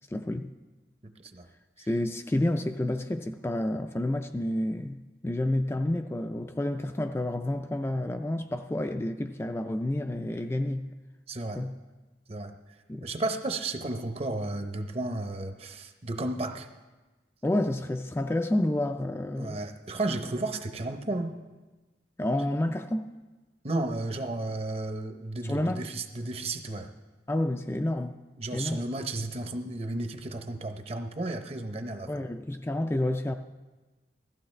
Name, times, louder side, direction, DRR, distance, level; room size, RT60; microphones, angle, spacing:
voice 1, 0.1-0.5 1.9-10.9 11.6-11.7 12.9-13.1 17.4-19.6 22.2-23.1 25.4-25.9 27.3-28.2 28.5-28.8 32.1-33.3, left 1 dB, 15° left, 0.3 m, -29 dB
voice 2, 1.0-1.5 11.3-11.6 12.3-12.5 13.0-16.7 19.4-21.4 23.6-26.9 28.4-32.2, right 2 dB, 35° right, 0.7 m, -33 dB
16.0 x 14.5 x 3.2 m
head